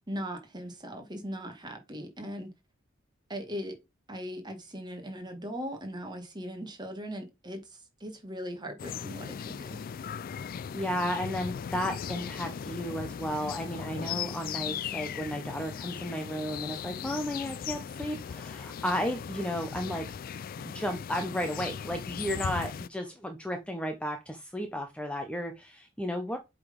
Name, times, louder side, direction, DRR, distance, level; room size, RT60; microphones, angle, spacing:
voice 1, 0.1-2.5 3.3-3.7 4.1-9.8, equal, 20° right, 1.7 m, -39 dB
sound 1, 8.8-22.9, left 7 dB, 45° left, 0.3 m, -38 dB
voice 2, 10.7-20.1 20.6-26.4, equal, 5° left, 0.8 m, -33 dB
7.6 x 3.9 x 5.2 m
head